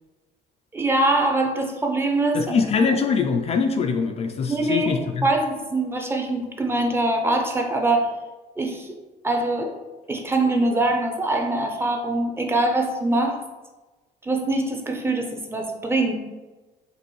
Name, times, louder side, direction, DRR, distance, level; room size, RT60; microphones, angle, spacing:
voice 1, 0.7-2.6 4.5-8.1 8.6-8.9 9.2-9.7 10.1-13.4 14.2-16.1, right 2 dB, 15° right, 3 dB, 0.5 m, -23 dB
voice 2, 2.3-5.3, left 5 dB, 40° left, 4 dB, 0.4 m, -23 dB
5.2 x 2.5 x 3.1 m, 1.2 s
cardioid pair, 110°, 17 cm